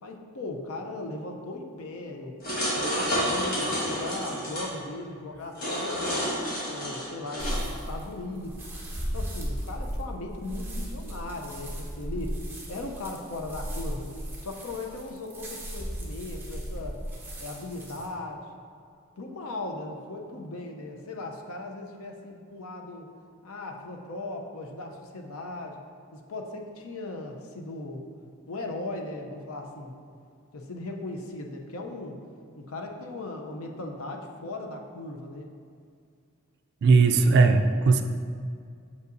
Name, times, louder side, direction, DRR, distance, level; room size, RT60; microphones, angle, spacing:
voice 1, 0.0-2.4 2.7-6.3 6.7-8.6 9.1-12.4 12.7-14.2 14.4-17.0 17.4-18.5 19.2-23.1 23.4-25.8 26.1-28.0 28.5-30.0 30.5-32.2 32.6-35.5, left 2 dB, 70° left, 2 dB, 0.6 m, -38 dB
sound 1, 2.4-4.7 5.5-7.6, equal, 40° left, 1.4 m, -29 dB
sound 2, 7.4-18.1, equal, 10° right, 0.7 m, -36 dB
voice 2, 36.8-38.0, right 4 dB, 50° right, 7 dB, 0.3 m, -18 dB
6.7 x 5.4 x 2.6 m, 2.3 s
head